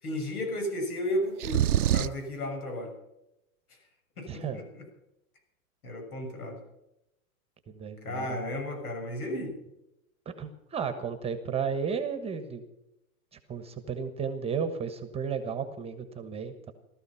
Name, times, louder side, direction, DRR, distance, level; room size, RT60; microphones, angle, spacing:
voice 1, 0.0-2.9 3.7-3.8 4.2-4.9 5.8-6.6 8.0-9.6, left 1 dB, 85° left, 4 dB, 7.0 m, -34 dB
sound 1, 1.4-2.3, right 11 dB, 85° right, 0.8 m, -25 dB
voice 2, 4.3-4.6 7.7-8.5 10.2-12.6 13.5-16.7, right 6 dB, 15° right, 9 dB, 1.2 m, -33 dB
18.0 x 13.5 x 5.7 m, 0.87 s
hypercardioid pair, 140°, 43 cm